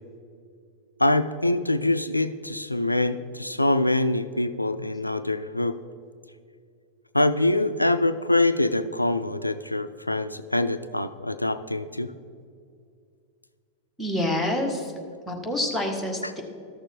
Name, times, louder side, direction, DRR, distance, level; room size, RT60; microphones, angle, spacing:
voice 1, 1.0-5.8 7.1-12.1, left 2 dB, 85° left, 11 dB, 0.3 m, -24 dB
voice 2, 14.0-14.9 15.3-16.4, left 1 dB, ahead, -2 dB, 1.6 m, -27 dB
13.5 x 6.6 x 4.6 m, 2.3 s
figure-of-eight pair, 90°, 0 cm